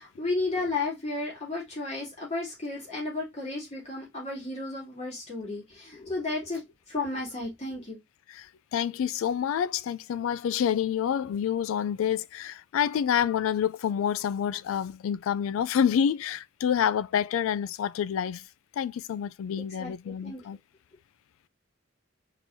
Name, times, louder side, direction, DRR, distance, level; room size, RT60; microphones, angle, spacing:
voice 1, 0.0-8.0 19.5-20.4, left 2 dB, 30° left, 2.4 m, -33 dB
voice 2, 8.7-18.4 18.8-20.6, left 8 dB, 80° left, 0.3 m, -28 dB
4.4 x 3.7 x 2.6 m
head